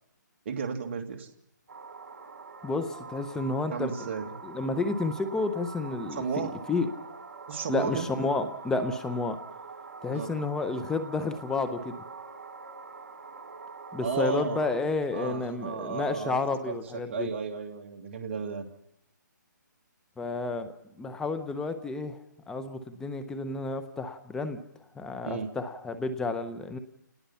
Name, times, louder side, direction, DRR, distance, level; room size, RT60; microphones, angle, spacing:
voice 1, 0.4-1.3 3.7-4.4 6.1-6.5 7.5-8.1 10.1-10.3 14.0-14.6 15.1-16.4 16.7-16.8 17.1-18.7 25.2-25.5, right 6 dB, 35° right, 3 dB, 2.5 m, -33 dB
sound 1, 1.7-14.8, right 4 dB, 55° right, 4.8 m, -44 dB
voice 2, 2.6-3.9 4.4-6.2 6.7-6.9 7.7-9.4 10.0-12.0 13.9-17.3 20.2-20.7 21.0-22.2 22.5-24.6 24.9-26.8, left 3 dB, 5° left, 9 dB, 1.0 m, -30 dB
29.0 x 19.5 x 5.8 m, 0.79 s
hypercardioid pair, 160°, 10 cm